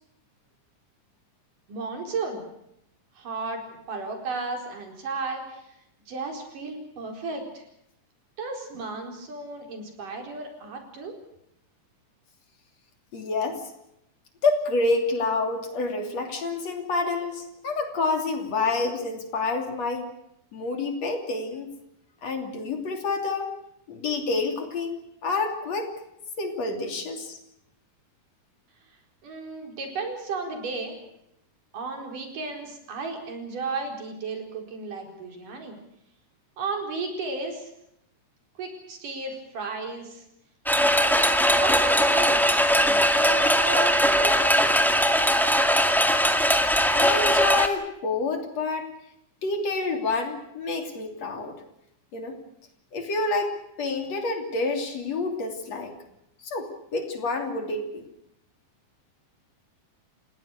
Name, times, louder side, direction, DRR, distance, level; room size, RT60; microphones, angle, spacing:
voice 1, 1.7-2.4 3.2-3.6 3.9-5.7 6.1-7.7 8.4-11.2 29.2-31.0 31.7-35.8 36.6-37.7 38.6-40.3 40.9-42.4 42.7-44.7, right 3 dB, 80° right, 3 dB, 6.0 m, -34 dB
voice 2, 13.1-13.6 14.4-20.1 20.5-21.7 22.2-23.5 23.9-25.9 26.4-27.4 46.9-48.9 49.4-51.6 52.1-52.4 52.9-53.5 53.8-55.9 56.4-58.0, left 3 dB, 55° left, 4 dB, 4.1 m, -28 dB
sound 1, 40.7-47.7, equal, ahead, 1.0 m, -20 dB
30.0 x 17.5 x 6.6 m, 0.79 s
omnidirectional pair, 3.7 m